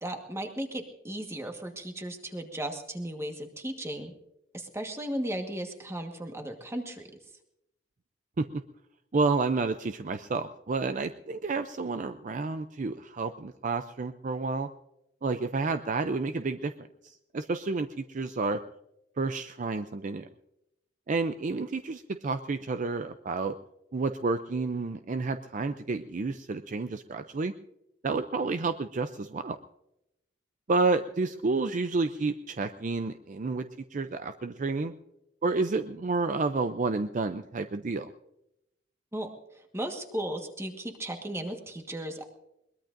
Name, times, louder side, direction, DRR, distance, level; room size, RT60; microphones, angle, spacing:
voice 1, 0.0-4.1 4.5-7.1 39.1-42.2, right 1 dB, 15° right, 4 dB, 1.4 m, -36 dB
voice 2, 9.1-14.7 15.2-16.7 17.0-18.6 19.2-20.3 21.1-23.5 23.9-27.5 28.0-29.6 30.7-33.7 33.9-34.9 35.4-38.1, right 3 dB, 45° right, 10 dB, 0.5 m, -30 dB
22.0 x 20.5 x 2.6 m, 0.86 s
head